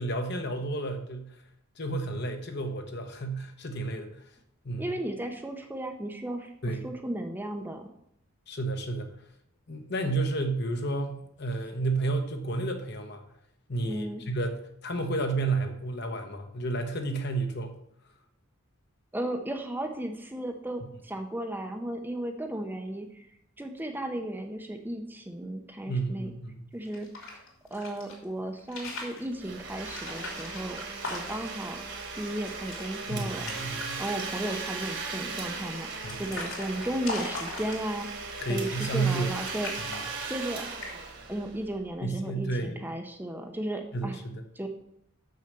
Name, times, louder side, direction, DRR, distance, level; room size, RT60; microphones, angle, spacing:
voice 1, 0.0-1.4 1.8-4.2 4.6-5.0 6.6-6.9 8.5-9.1 9.7-13.2 13.7-17.8 25.9-26.7 33.1-34.0 36.0-36.3 38.4-39.4 39.9-40.0 42.0-42.8 43.9-44.4, right 2 dB, 50° left, 5 dB, 1.1 m, -31 dB
voice 2, 4.8-7.8 13.8-14.2 19.1-23.3 23.6-26.3 26.7-27.1 27.7-30.8 31.1-31.8 32.2-33.4 34.0-38.1 38.5-39.7 40.3-40.6 41.3-44.2 44.6-44.7, right 1 dB, 10° right, 4 dB, 0.7 m, -35 dB
sound 1, 26.8-28.2 28.6-29.3 29.8-31.6 32.0-32.1 32.4-32.9 33.2-33.9 34.2-34.7 35.4-38.1 38.8-39.2 39.5-40.5 40.8-41.2, left 2 dB, 70° left, 3.1 m, -39 dB
Domestic sounds home sounds, 29.3-41.9, right 4 dB, 55° right, 1.7 m, -38 dB
6.6 x 6.4 x 6.8 m, 0.73 s
head